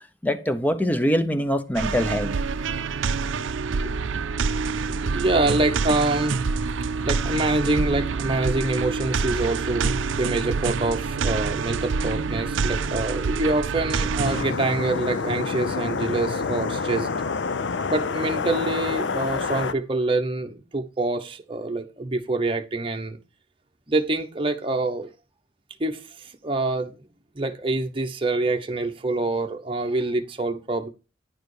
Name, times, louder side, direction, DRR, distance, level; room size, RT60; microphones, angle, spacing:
voice 1, 0.2-2.4 3.8-3.9, equal, 10° left, 0.7 m, -23 dB
sound 1, 1.8-14.4, right 4 dB, 80° right, 0.5 m, -26 dB
voice 2, 4.9-17.1 17.9-23.2 23.9-25.1 25.8-26.9 27.4-30.9, right 2 dB, 25° right, 0.9 m, -26 dB
sound 2, 14.2-19.7, left 4 dB, 65° left, 0.6 m, -27 dB
10.5 x 4.9 x 4.8 m
head